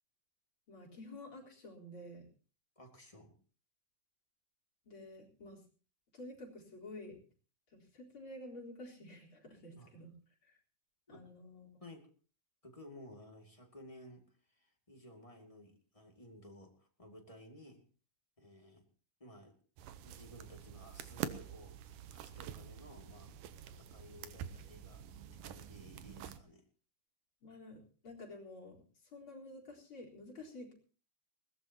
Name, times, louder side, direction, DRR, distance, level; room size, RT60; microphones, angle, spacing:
voice 1, 0.7-2.3 4.8-5.6 6.1-7.2 7.7-10.1 10.4-10.6 11.1-11.7 27.4-30.9, left 1 dB, 40° left, -2 dB, 4.8 m, -51 dB
voice 2, 2.8-3.4 9.7-9.9 11.1-11.3 11.8-12.1 12.6-17.8 18.4-18.9 19.2-19.6 20.0-23.4 23.6-25.0 25.3-26.7, left 1 dB, 10° left, 2 dB, 1.8 m, -56 dB
sound 1, 19.8-26.4, right 9 dB, 85° right, 2.6 m, -47 dB
20.5 x 17.5 x 2.9 m, 0.40 s
omnidirectional pair, 3.7 m